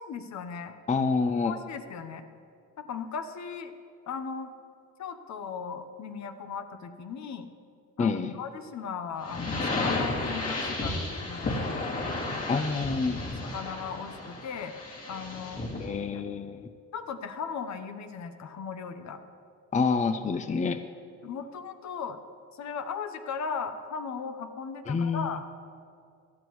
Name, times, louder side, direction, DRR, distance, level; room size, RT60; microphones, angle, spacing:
voice 1, 0.0-0.7 1.4-2.3 2.8-3.7 4.1-4.5 5.0-7.5 8.0-11.8 12.5-12.6 13.4-14.7 15.1-15.6 16.9-19.2 21.2-22.2 22.5-25.5, left 6 dB, 65° left, 8 dB, 1.0 m, -37 dB
voice 2, 0.9-1.6 8.0-8.3 12.5-13.2 15.8-16.7 19.7-20.8 24.9-25.4, left 4 dB, 25° left, 10 dB, 0.5 m, -27 dB
sound 1, 9.2-15.9, left 2 dB, 50° left, 2.5 m, -33 dB
17.5 x 12.5 x 3.1 m, 2.4 s
cardioid pair, 90°, 30 cm